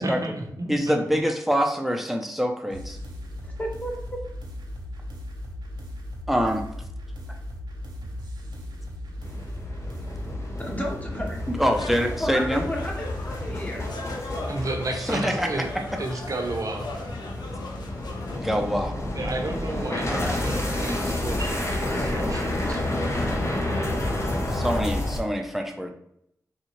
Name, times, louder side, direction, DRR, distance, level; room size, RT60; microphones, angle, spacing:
voice 1, 0.0-1.2 14.4-15.7 16.0-16.9 19.1-22.9, right 2 dB, 50° right, 2 dB, 0.8 m, -32 dB
voice 2, 0.7-3.0 6.3-6.6 11.5-12.7 15.1-15.6 18.4-18.9 20.1-20.3 24.5-25.9, equal, 5° right, 3 dB, 0.7 m, -25 dB
sound 1, 2.7-13.7, left 1 dB, 80° right, 0.8 m, -37 dB
voice 3, 3.4-4.2 10.6-11.4 11.6-13.9, equal, 20° left, 0 dB, 1.1 m, -33 dB
sound 2, 9.2-25.2, left 1 dB, 40° left, 0.8 m, -30 dB
sound 3, 11.7-18.4, left 2 dB, 80° left, 0.6 m, -39 dB
4.2 x 2.4 x 3.1 m, 0.74 s
cardioid pair, 45°, 7 cm